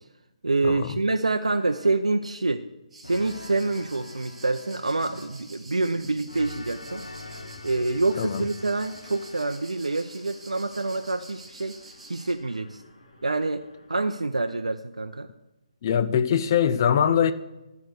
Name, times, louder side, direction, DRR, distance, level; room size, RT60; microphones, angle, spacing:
voice 1, 0.4-2.7 3.0-11.7 12.1-12.8 13.2-15.3, right 3 dB, 75° right, 0.5 m, -27 dB
sound 1, 1.5-2.2 3.0-5.5 6.3-9.8, left 2 dB, 75° left, 1.4 m, -44 dB
sound 2, 2.9-12.3, right 2 dB, 10° right, 1.4 m, -47 dB
Mechanisms, 7.2-14.0, left 1 dB, 60° left, 2.1 m, -52 dB
voice 2, 15.8-17.3, left 8 dB, 35° left, 0.5 m, -22 dB
13.0 x 4.7 x 6.5 m
figure-of-eight pair, 140°, 4 cm